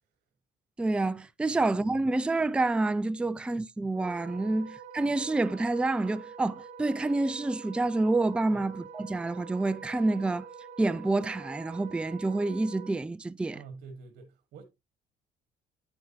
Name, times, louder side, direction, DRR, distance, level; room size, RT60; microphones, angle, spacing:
voice 1, 0.8-10.4 10.8-13.6, right 2 dB, 5° right, 0.4 m, -28 dB
Wind instrument woodwind instrument, 3.9-12.9, right 6 dB, 45° right, 2.6 m, -46 dB
voice 2, 13.5-14.6, right 4 dB, 70° right, 1.6 m, -48 dB
9.4 x 7.9 x 2.8 m
cardioid pair, 110°, 17 cm